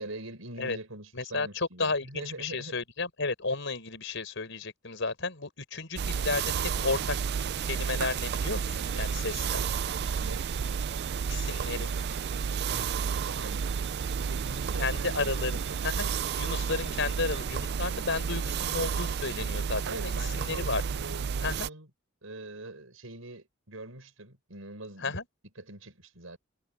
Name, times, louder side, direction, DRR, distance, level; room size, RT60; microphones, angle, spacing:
voice 1, 0.0-2.8 10.2-10.5 13.2-13.7 14.2-15.9 19.9-21.9 22.2-25.2 25.6-26.4, right 2 dB, 85° right, 5.4 m, -43 dB
voice 2, 1.1-7.2 7.6-9.7 11.3-11.9 14.8-16.1 16.4-20.8 21.4-21.7 25.0-25.2, left 3 dB, 65° left, 5.4 m, -33 dB
sound 1, 6.0-21.7, right 6 dB, 55° right, 0.4 m, -31 dB
sound 2, 8.8-17.6, right 7 dB, 35° right, 7.4 m, -52 dB
head